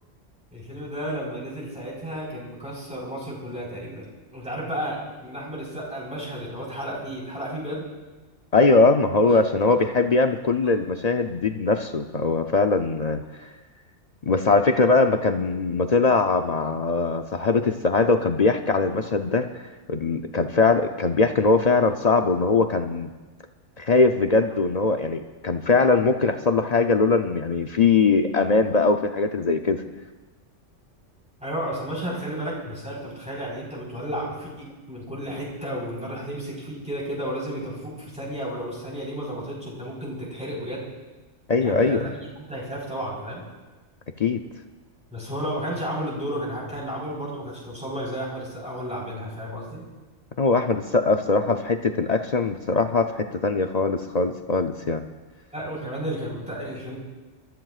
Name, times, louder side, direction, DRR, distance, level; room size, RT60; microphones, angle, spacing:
voice 1, 0.5-4.1 4.3-7.8 9.2-9.4 31.4-40.9 41.6-43.4 45.1-49.8 55.5-57.0, equal, 5° right, -5 dB, 4.4 m, -32 dB
voice 2, 8.5-13.5 14.2-19.5 19.9-23.1 23.8-29.8 41.5-42.1 44.2-44.4 50.4-55.0, left 3 dB, 45° left, 6 dB, 0.6 m, -21 dB
28.0 x 14.0 x 2.4 m, 1.2 s
omnidirectional pair, 1.3 m